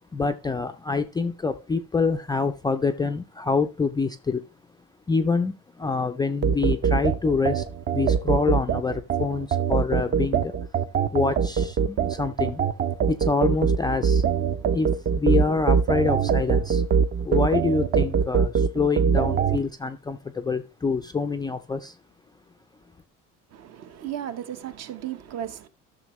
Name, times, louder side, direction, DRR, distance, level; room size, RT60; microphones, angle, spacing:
voice 1, 0.1-4.4 5.1-7.6 7.9-10.5 11.1-12.6 13.1-14.4 14.7-16.8 17.2-22.0, left 4 dB, 15° left, 0.3 m, -26 dB
sound 1, 6.4-19.6, right 7 dB, 35° right, 0.6 m, -23 dB
voice 2, 23.5-25.7, right 10 dB, 50° right, 1.0 m, -35 dB
13.5 x 6.3 x 3.1 m
cardioid pair, 140°, 32 cm